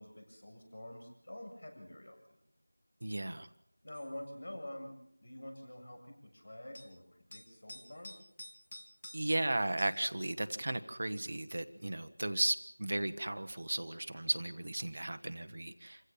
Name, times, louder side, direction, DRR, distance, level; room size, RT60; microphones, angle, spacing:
voice 1, 0.0-2.4 3.8-5.0 5.2-7.0 7.3-8.1, left 1 dB, 55° left, 4 dB, 7.6 m, -47 dB
voice 2, 3.0-3.5 9.1-16.0, right 1 dB, 40° right, 10 dB, 1.0 m, -35 dB
sound 1, 3.9-4.1 6.7-6.9 7.3-9.4 9.8-10.1 12.6-12.7, left 1 dB, 40° left, 2.4 m, -51 dB
27.5 x 16.0 x 7.4 m, 0.71 s
figure-of-eight pair, 180°, 0 cm